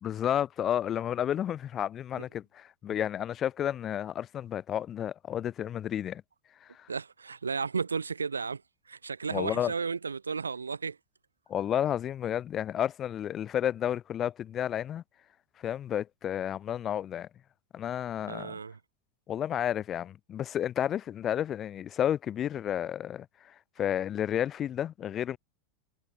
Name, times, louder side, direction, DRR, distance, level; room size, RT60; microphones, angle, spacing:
voice 1, 0.0-6.2 6.6-6.9 9.3-9.7 11.5-15.0 15.6-17.3 17.7-18.6 19.3-25.4, left 10 dB, 35° left, 0.9 m, -31 dB
voice 2, 6.9-8.6 8.9-11.0 18.3-18.8, right 5 dB, 90° right, 0.8 m, -33 dB
hypercardioid pair, 90°, 0 cm